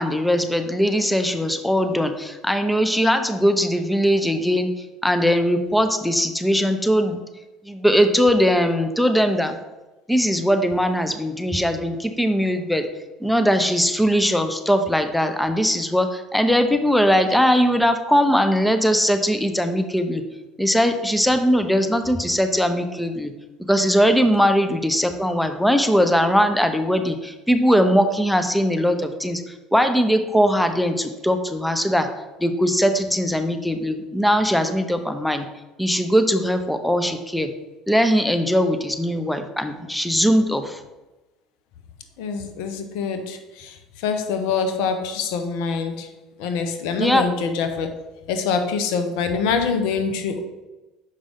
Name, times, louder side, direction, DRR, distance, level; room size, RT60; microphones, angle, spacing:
voice 1, 0.0-4.7 5.0-7.2 7.7-9.6 10.1-12.8 13.2-20.2 20.6-23.3 23.7-32.1 32.4-35.4 35.8-37.5 37.9-40.8 47.0-47.2, equal, 5° left, 8 dB, 0.7 m, -20 dB
voice 2, 42.2-46.1 46.4-47.9 48.3-50.4, left 5 dB, 70° left, 7 dB, 0.8 m, -25 dB
6.5 x 5.1 x 3.6 m, 1.1 s
hypercardioid pair, 70°, 0 cm